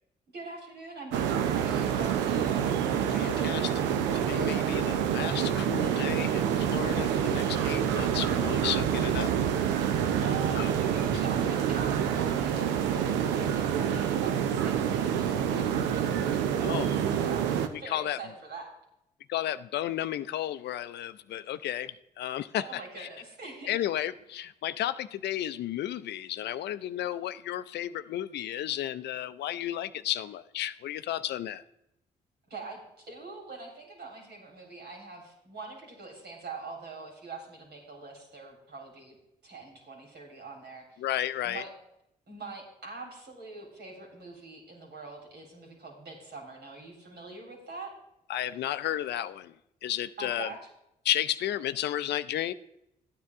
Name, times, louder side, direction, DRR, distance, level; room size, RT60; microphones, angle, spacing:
voice 1, 0.3-2.8 10.1-18.7 22.6-23.8 32.5-39.2 39.4-41.1 41.4-41.7 42.3-47.9 50.2-50.6, right 4 dB, 65° right, 0 dB, 3.5 m, -44 dB
sound 1, 1.1-17.7, right 8 dB, 85° right, 0.6 m, -27 dB
voice 2, 3.1-9.3 10.5-10.7 11.1-11.2 16.6-16.9 17.9-18.2 19.3-23.1 23.7-31.6 41.0-41.6 48.3-49.5 49.8-50.5 51.0-52.5, left 12 dB, 70° left, 15 dB, 0.5 m, -33 dB
12.5 x 9.5 x 3.6 m, 0.81 s
hypercardioid pair, 45°, 18 cm